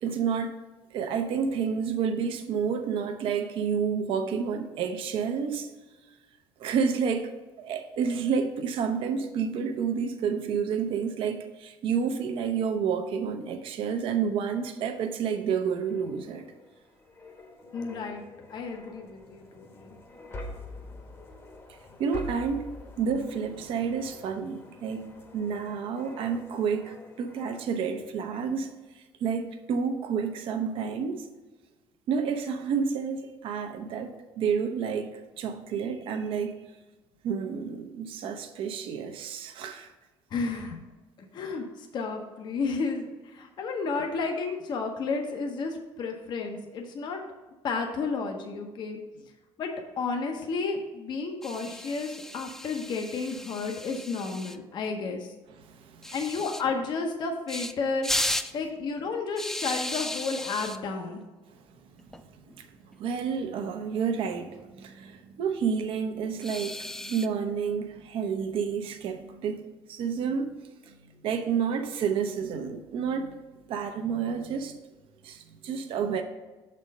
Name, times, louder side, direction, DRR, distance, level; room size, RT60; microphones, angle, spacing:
voice 1, 0.0-0.6 0.9-5.7 6.6-7.3 7.6-16.4 21.7-22.7 23.0-25.0 25.3-31.3 32.1-36.6 37.2-39.9 55.6-56.1 61.5-61.6 62.2-62.3 62.6-69.6 69.9-70.5 70.8-70.9 71.2-73.4 73.7-74.8 75.2-76.2, right 6 dB, 65° right, 7 dB, 0.8 m, -30 dB
sound 1, 15.6-27.9 28.3-28.5, left 2 dB, 25° left, 1.0 m, -46 dB
voice 2, 17.7-18.2 18.5-19.9 40.3-40.8 41.3-41.7 41.9-43.1 43.3-47.2 47.6-49.0 49.6-49.7 50.0-55.3 56.1-58.1 58.5-61.2, left 4 dB, 50° left, 3 dB, 0.8 m, -32 dB
sound 2, 51.4-54.6 56.0-56.6 57.5-57.7 58.0-58.5 59.4-60.8 62.0-62.2 62.5-62.6 62.9-63.0 64.3-64.8 66.4-67.3, left 1 dB, 5° left, 0.3 m, -34 dB
6.4 x 4.3 x 5.3 m, 1.2 s
cardioid pair, 120°, 10 cm